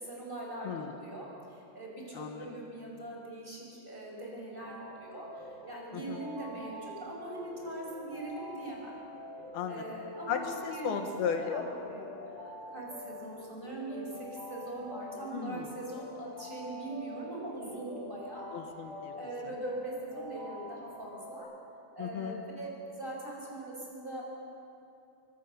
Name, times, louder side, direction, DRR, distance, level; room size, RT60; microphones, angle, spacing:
voice 1, 0.0-8.9 9.7-10.4 10.7-11.0 11.4-18.5 19.2-21.5 21.9-24.2, right 2 dB, 15° right, -3 dB, 5.7 m, -41 dB
voice 2, 2.1-2.5 5.9-6.2 9.5-9.8 10.3-11.6 15.3-15.7 18.5-19.2 22.0-22.4, left 7 dB, 80° left, 5 dB, 3.2 m, -35 dB
sound 1, 4.6-21.4, left 1 dB, 35° right, 7.5 m, -46 dB
25.0 x 23.5 x 6.8 m, 2.6 s
omnidirectional pair, 4.3 m